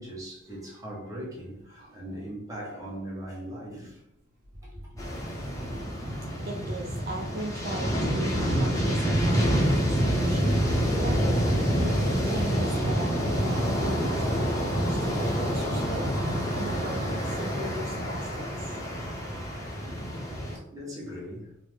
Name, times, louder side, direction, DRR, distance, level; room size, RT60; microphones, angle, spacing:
voice 1, 0.0-4.0 4.6-5.4 12.0-12.1 18.8-19.0 19.8-20.0 20.4-21.5, equal, 15° right, 1.0 m, -40 dB
sound 1, 5.0-20.6, equal, 15° left, 0.7 m, -27 dB
voice 2, 6.5-10.6 11.0-11.2 11.8-18.5, right 1 dB, 50° right, 0.3 m, -39 dB
3.2 x 2.0 x 3.2 m
head